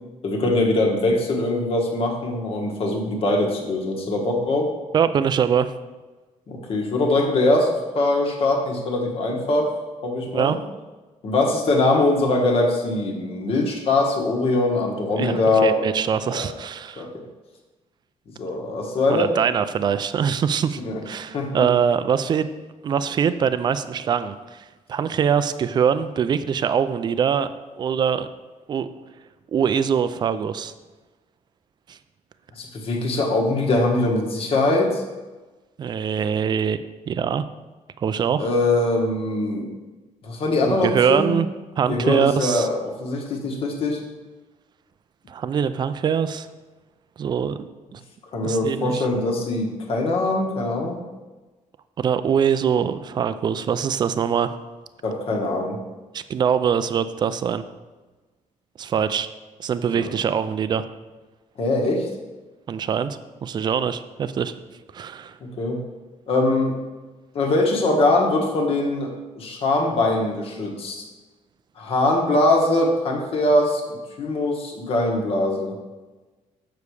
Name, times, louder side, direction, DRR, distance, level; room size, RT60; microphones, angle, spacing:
voice 1, 0.2-4.7 6.5-9.7 10.0-10.5 11.2-15.8 16.3-16.5 17.0-17.1 18.3-19.3 20.8-21.0 21.3-21.7 32.6-35.0 38.4-39.7 40.2-41.3 41.9-44.0 48.3-51.0 55.0-55.8 59.9-60.1 61.6-62.1 65.4-65.8 66.3-66.7 67.3-71.0 71.8-75.8, left 2 dB, 45° left, 1 dB, 1.4 m, -22 dB
voice 2, 4.9-5.7 10.3-10.6 15.2-17.1 19.1-22.5 22.8-27.5 27.8-28.3 28.7-28.9 29.5-30.7 31.9-32.0 35.8-37.5 38.0-38.5 40.6-41.5 41.8-42.7 45.3-46.5 47.2-48.0 48.4-49.1 52.0-54.5 56.1-57.6 58.8-59.3 59.6-60.8 62.7-64.5 64.9-65.4, right 7 dB, 35° right, 12 dB, 0.4 m, -23 dB
6.9 x 6.8 x 4.8 m, 1.2 s
cardioid pair, 170°, 13 cm